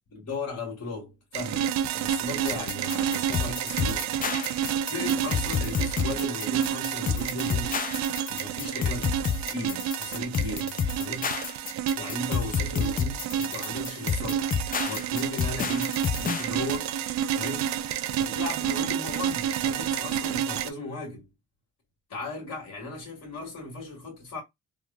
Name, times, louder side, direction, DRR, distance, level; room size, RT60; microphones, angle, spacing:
voice 1, 0.1-4.1 4.9-9.1 9.4-11.3 12.0-14.5 14.9-15.9 16.2-17.0 17.3-17.7 18.2-21.3 22.1-24.4, left 2 dB, 60° left, 1.8 m, -37 dB
sound 1, 1.3-20.7, right 9 dB, 65° right, 0.5 m, -30 dB
sound 2, 2.5-16.5, left 6 dB, 30° left, 0.4 m, -30 dB
3.5 x 2.0 x 2.5 m
cardioid pair, 90°, 30 cm